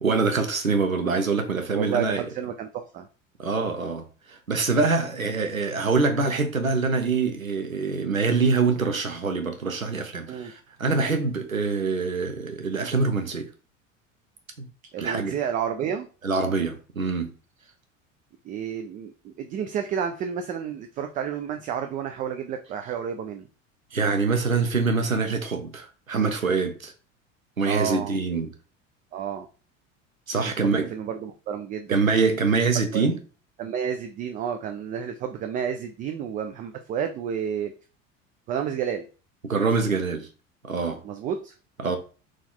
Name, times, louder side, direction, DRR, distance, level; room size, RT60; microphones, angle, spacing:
voice 1, 0.0-2.2 3.4-13.5 14.6-14.7 15.0-15.4 16.2-17.3 23.9-26.9 27.6-28.5 30.3-30.9 31.9-33.2 39.4-40.3 40.6-41.0 41.8-42.0, right 4 dB, 90° right, 0.7 m, -25 dB
voice 2, 1.7-3.1 10.3-10.5 14.9-16.1 18.4-23.5 27.6-28.2 29.1-29.5 30.3-30.5 30.9-32.0 32.9-33.0 33.6-37.7 38.5-39.0 41.0-41.5, right 8 dB, 20° right, 0.3 m, -30 dB
4.2 x 3.1 x 3.8 m
figure-of-eight pair, 70°, 40 cm